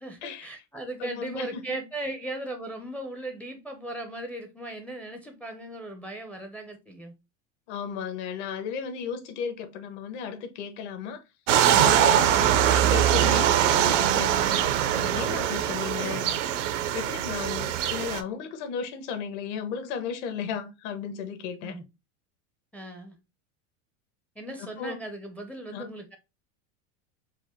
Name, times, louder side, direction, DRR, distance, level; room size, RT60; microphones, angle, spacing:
voice 1, 0.0-7.1 21.6-21.8 22.7-23.2 24.4-26.2, right 1 dB, 5° left, 0.4 m, -37 dB
voice 2, 1.0-1.8 7.7-11.2 11.7-14.4 14.8-16.4 16.9-21.8 24.6-25.0 25.7-25.8, left 7 dB, 70° left, 1.2 m, -35 dB
sound 1, 11.5-18.2, right 10 dB, 85° right, 0.7 m, -22 dB
4.8 x 2.1 x 4.2 m
supercardioid pair, 145°, 36 cm